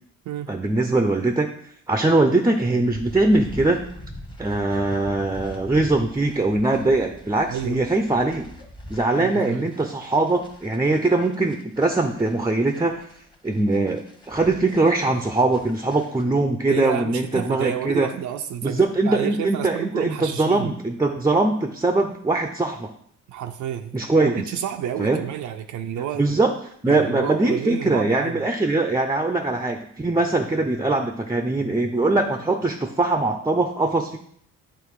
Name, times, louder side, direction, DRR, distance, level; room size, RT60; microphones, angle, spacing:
voice 1, 0.5-1.5 1.9-3.9 4.4-8.5 8.9-13.1 13.4-18.1 18.6-22.9 23.9-24.4 25.0-25.2 26.2-26.5 26.8-34.2, right 2 dB, 10° right, 5 dB, 0.6 m, -22 dB
sound 1, 2.8-16.2, equal, 15° left, 1.1 m, -42 dB
voice 2, 7.5-7.8 9.1-9.7 16.7-20.7 23.3-26.2 26.9-28.5, right 10 dB, 75° right, 5 dB, 0.6 m, -30 dB
8.8 x 3.1 x 4.7 m, 0.64 s
cardioid pair, 90°, 30 cm